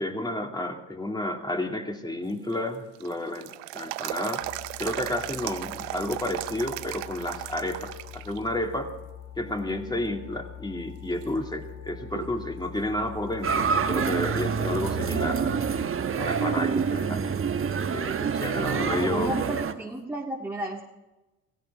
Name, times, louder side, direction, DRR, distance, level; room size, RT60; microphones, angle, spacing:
voice 1, 0.0-4.4 4.8-8.9 9.4-15.6 16.2-17.4 17.9-19.3, left 1 dB, 10° left, 3 dB, 2.7 m, -31 dB
sound 1, 2.3-8.4 8.8-8.9 9.6-10.1 10.6-10.7 11.2-12.4 12.8-12.9 16.2-16.3 19.3-19.4, right 16 dB, 85° right, 0.7 m, -36 dB
sound 2, 4.4-15.9, left 11 dB, 80° left, 2.4 m, -43 dB
voice 2, 9.4-10.0 17.0-17.4 18.5-20.8, right 1 dB, 5° right, -2 dB, 2.0 m, -35 dB
sound 3, 13.4-19.7, right 6 dB, 35° right, 1.2 m, -27 dB
16.5 x 16.0 x 4.8 m, 1.1 s
hypercardioid pair, 70°, 37 cm